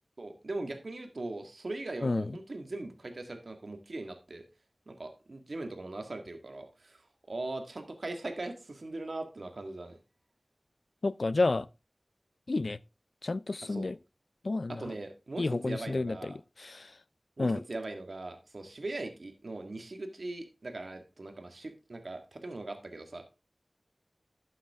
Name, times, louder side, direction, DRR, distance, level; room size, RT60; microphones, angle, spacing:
voice 1, 0.2-4.5 4.9-10.0 13.6-13.9 14.7-16.4 17.4-23.2, right 2 dB, 80° right, 1.8 m, -40 dB
voice 2, 11.0-11.7 12.5-12.8 13.2-14.0 14.4-14.8 15.4-16.3 16.6-16.9 17.4-17.6, left 3 dB, 75° left, 0.4 m, -30 dB
12.0 x 7.7 x 3.5 m
wide cardioid pair, 45°, 0 cm